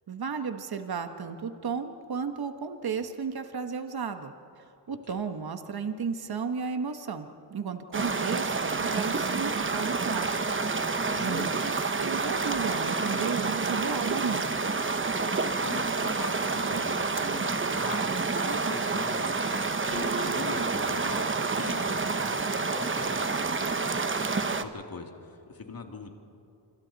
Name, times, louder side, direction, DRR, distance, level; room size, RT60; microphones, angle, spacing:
voice 1, 0.1-4.3 4.9-10.4 11.1-14.6, right 6 dB, 60° right, 8 dB, 1.3 m, -34 dB
sound 1, 7.9-24.6, right 4 dB, 30° right, 1.0 m, -28 dB
voice 2, 11.1-11.6 15.6-19.4 19.9-21.3 21.6-23.7 24.6-26.1, left 4 dB, 55° left, 3 dB, 2.5 m, -41 dB
sound 2, 19.9-21.6, right 4 dB, 5° right, 1.2 m, -42 dB
27.0 x 25.5 x 4.1 m, 2.8 s
wide cardioid pair, 90°, 43 cm